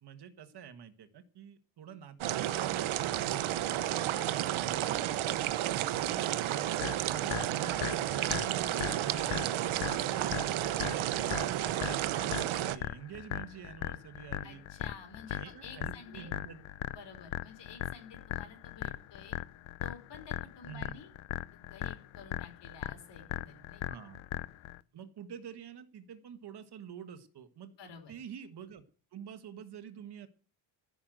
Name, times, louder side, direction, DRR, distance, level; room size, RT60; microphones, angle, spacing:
voice 1, 0.0-3.3 4.3-9.5 9.9-14.6 15.3-16.6 20.7-21.0 23.9-24.2 24.9-27.7 28.1-28.8 29.1-30.3, right 8 dB, 55° right, 11 dB, 1.5 m, -48 dB
sound 1, 2.2-12.8, right 13 dB, 80° right, 1.0 m, -32 dB
voice 2, 3.8-4.4 14.4-16.3 16.9-19.4 19.8-21.1 21.5-24.0 27.8-28.1, left 5 dB, 60° left, 6 dB, 4.5 m, -51 dB
sound 2, 6.8-24.8, left 14 dB, 80° left, 0.8 m, -39 dB
14.0 x 6.4 x 7.9 m, 0.39 s
cardioid pair, 135°, 48 cm